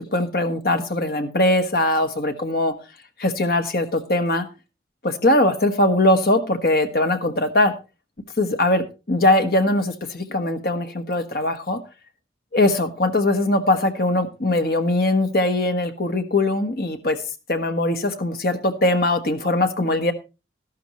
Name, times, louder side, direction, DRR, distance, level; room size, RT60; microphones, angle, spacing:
voice 1, 0.1-2.7 3.2-4.5 5.0-7.7 8.4-11.8 12.5-17.2 17.5-20.1, left 1 dB, 55° left, 8 dB, 1.3 m, -21 dB
13.0 x 12.0 x 3.1 m, 0.29 s
head